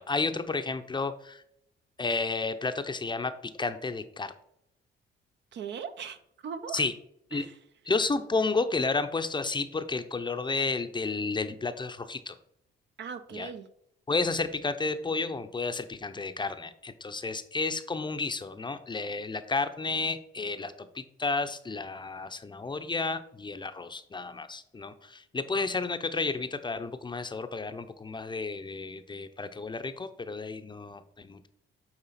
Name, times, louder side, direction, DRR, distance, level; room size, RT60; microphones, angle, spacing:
voice 1, 0.0-1.4 2.0-4.3 6.7-6.9 7.3-7.5 7.9-12.3 13.3-13.5 14.1-31.5, left 3 dB, 25° left, 9 dB, 0.6 m, -32 dB
voice 2, 5.5-6.8 7.3-7.5 13.0-13.6, right 7 dB, 65° right, 10 dB, 0.7 m, -39 dB
8.8 x 3.7 x 4.1 m, 0.74 s
cardioid pair, 90°, 20 cm